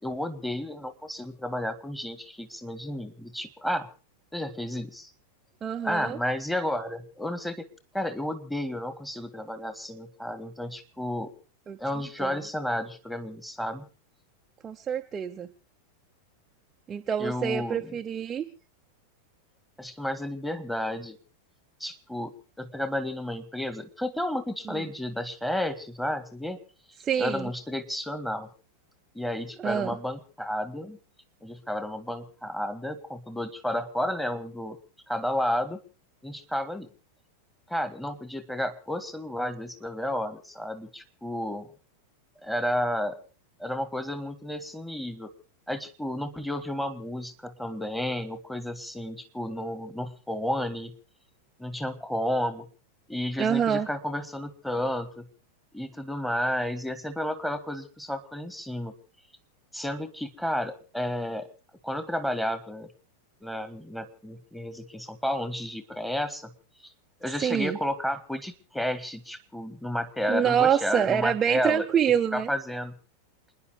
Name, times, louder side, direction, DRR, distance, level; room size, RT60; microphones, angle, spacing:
voice 1, 0.0-3.9 4.3-5.1 5.8-7.7 7.9-11.3 11.8-13.9 17.2-17.9 19.8-21.2 21.8-26.6 27.2-28.5 29.1-31.0 31.4-34.8 35.1-35.8 36.2-36.9 37.7-41.7 42.4-43.2 43.6-45.3 45.7-50.9 51.6-52.7 53.1-55.3 55.7-58.9 59.7-61.5 61.8-62.9 63.4-66.5 67.2-71.9 72.3-72.9, left 1 dB, 5° left, 12 dB, 1.7 m, -32 dB
voice 2, 5.6-6.2 11.7-11.8 12.2-12.3 14.6-15.5 16.9-18.5 24.7-24.8 27.0-27.5 29.6-30.0 53.4-53.9 67.4-67.8 70.3-72.5, right 8 dB, 25° right, 4 dB, 0.8 m, -26 dB
28.5 x 10.5 x 4.8 m, 0.37 s
figure-of-eight pair, 90°, 0 cm